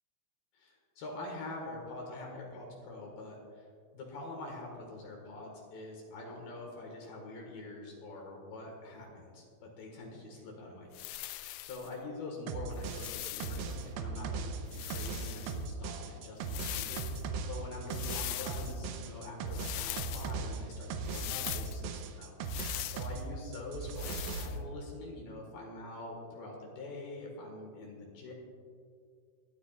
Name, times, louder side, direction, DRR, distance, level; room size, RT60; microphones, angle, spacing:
voice 1, 0.5-3.7 3.9-28.3, left 2 dB, 60° left, 0 dB, 2.7 m, -45 dB
sound 1, 10.9-11.9 12.7-13.7 14.7-15.6 16.4-17.2 17.9-18.8 19.5-20.3 21.1-21.8 22.4-23.1 24.0-24.6, left 16 dB, 85° left, 3.0 m, -41 dB
sound 2, 12.5-23.3 23.5-24.5, right 4 dB, 85° right, 3.5 m, -38 dB
22.5 x 12.0 x 2.4 m, 2.2 s
omnidirectional pair, 6.0 m